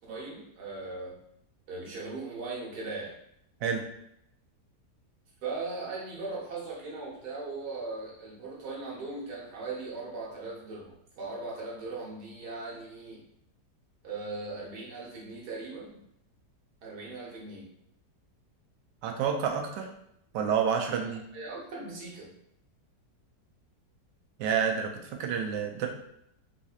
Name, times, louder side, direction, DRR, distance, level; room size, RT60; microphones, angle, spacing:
voice 1, 0.1-1.1 1.7-3.1 5.4-13.2 14.0-16.0 16.8-17.7 21.0-21.1 21.3-22.3, right 3 dB, 65° right, -4 dB, 1.5 m, -39 dB
voice 2, 19.0-19.9 20.3-21.2 24.4-25.9, right 7 dB, 80° right, 2 dB, 1.2 m, -29 dB
4.1 x 2.7 x 2.4 m, 0.75 s
omnidirectional pair, 1.9 m